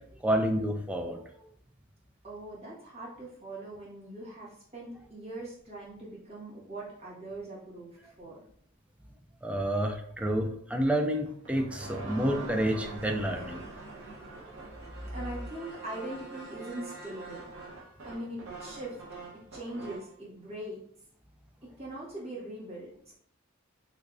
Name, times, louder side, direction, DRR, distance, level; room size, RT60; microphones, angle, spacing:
voice 1, 0.2-1.2 9.4-13.6, right 1 dB, 5° right, 3 dB, 0.3 m, -29 dB
voice 2, 2.2-8.4 15.1-17.5 18.0-19.0 19.5-20.8 21.6-23.1, right 1 dB, 30° right, -7 dB, 1.5 m, -41 dB
sound 1, 11.3-20.1, right 3 dB, 60° right, 0.9 m, -44 dB
3.3 x 3.2 x 2.5 m, 0.65 s
head